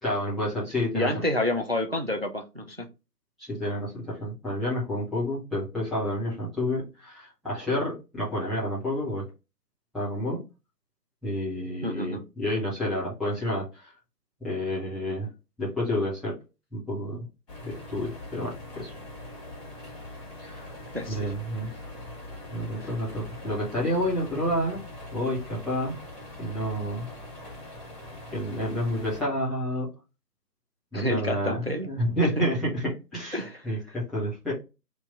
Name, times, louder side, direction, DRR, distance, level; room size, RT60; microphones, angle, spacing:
voice 1, 0.0-1.1 3.5-9.2 9.9-10.4 11.2-13.9 14.4-15.3 15.6-16.4 16.7-17.3 17.6-18.9 20.4-20.7 21.1-21.7 22.5-24.8 25.1-26.0 26.4-27.1 28.3-29.9 30.9-31.6 31.8-34.5, equal, ahead, 0.6 m, -29 dB
voice 2, 0.9-2.9 11.8-12.2 20.9-21.3 22.8-22.9 30.9-31.9 32.2-32.5 33.3-33.6, left 1 dB, 40° right, 0.4 m, -29 dB
sound 1, 17.5-29.2, left 1 dB, 20° left, 1.9 m, -42 dB
3.4 x 2.9 x 3.9 m
figure-of-eight pair, 150°, 49 cm